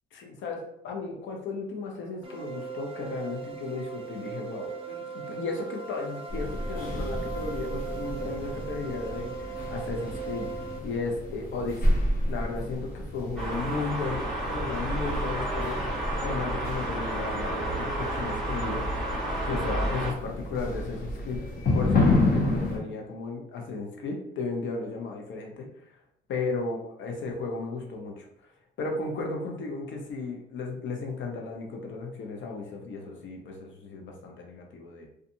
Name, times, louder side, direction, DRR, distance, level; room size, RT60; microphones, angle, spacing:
voice 1, 0.1-12.0 12.3-15.8 16.2-19.1 19.4-21.4 21.7-25.7 26.3-28.3 28.8-35.1, left 3 dB, 70° left, 1 dB, 0.7 m, -34 dB
sound 1, 2.2-10.8, right 5 dB, 30° right, 0.4 m, -39 dB
sound 2, 6.3-22.8, left 2 dB, 50° left, 1.0 m, -30 dB
sound 3, 13.4-20.1, right 1 dB, ahead, 1.3 m, -31 dB
2.6 x 2.4 x 2.6 m, 0.78 s
cardioid pair, 90°, 20 cm